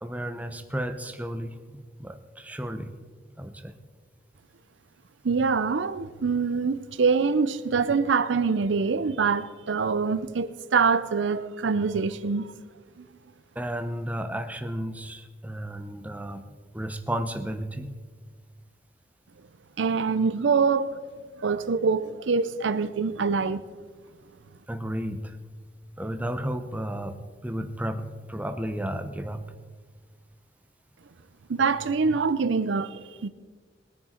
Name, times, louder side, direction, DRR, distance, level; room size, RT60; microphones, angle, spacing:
voice 1, 0.0-2.9 3.4-3.8 13.6-16.5 16.7-17.9 24.7-25.3 26.0-29.5, right 1 dB, 10° right, 0.8 m, -33 dB
voice 2, 5.2-12.5 13.0-13.1 19.8-21.0 21.4-23.6 31.5-33.3, right 5 dB, 85° right, 0.6 m, -25 dB
20.5 x 10.0 x 4.4 m
head